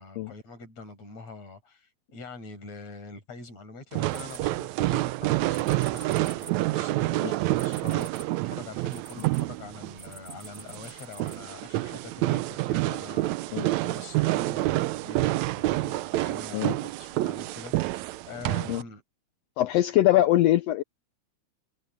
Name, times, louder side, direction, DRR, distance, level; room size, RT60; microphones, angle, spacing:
voice 1, 0.0-19.0, left 4 dB, 60° left, 6.8 m, -44 dB
sound 1, 3.9-18.8, right 18 dB, 80° right, 1.8 m, -28 dB
sound 2, 4.1-5.0 5.5-9.4 10.0-11.4, right 2 dB, 20° right, 5.9 m, -46 dB
voice 2, 19.6-20.8, left 14 dB, 85° left, 1.5 m, -22 dB
omnidirectional pair, 3.4 m